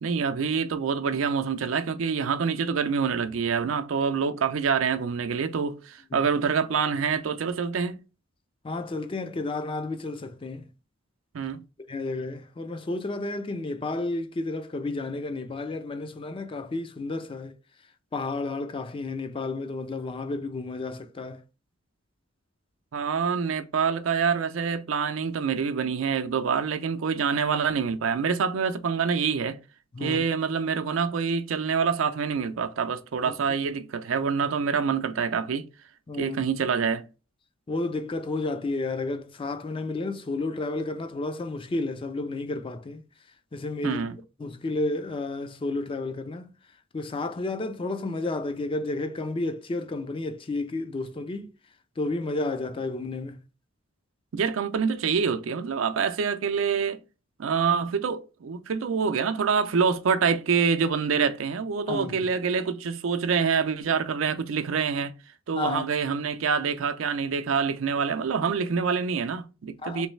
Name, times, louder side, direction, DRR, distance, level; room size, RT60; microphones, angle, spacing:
voice 1, 0.0-8.0 11.3-11.6 22.9-29.6 30.0-35.6 36.2-37.0 43.8-44.1 54.3-57.0 57.4-65.1 65.5-70.1, right 6 dB, 85° right, 0.4 m, -26 dB
voice 2, 8.6-10.7 11.9-17.5 18.1-21.4 29.9-30.2 33.2-33.3 36.1-36.4 37.7-43.0 43.5-44.0 44.4-46.5 46.9-51.5 52.0-53.4 61.9-62.2 65.5-65.9 69.8-70.0, left 2 dB, 25° left, 0.4 m, -31 dB
3.2 x 3.0 x 3.2 m
head